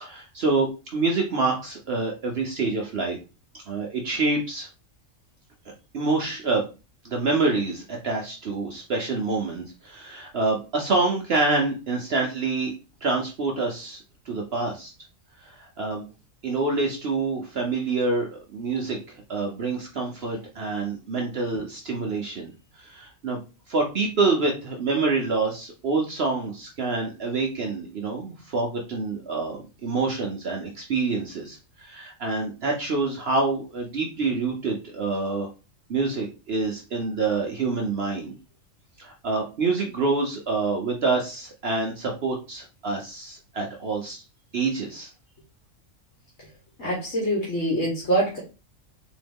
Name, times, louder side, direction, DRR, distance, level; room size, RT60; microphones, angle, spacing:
voice 1, 0.0-3.2 3.7-4.7 5.9-6.7 7.0-12.7 13.0-14.0 14.3-14.9 15.4-16.0 16.4-22.5 22.8-23.4 23.7-35.5 35.9-38.4 39.0-44.2 44.5-45.1, right 3 dB, 55° right, 1 dB, 0.9 m, -27 dB
voice 2, 46.8-48.4, right 1 dB, 60° left, -3 dB, 1.5 m, -24 dB
3.8 x 3.1 x 3.4 m, 0.31 s
omnidirectional pair, 1.4 m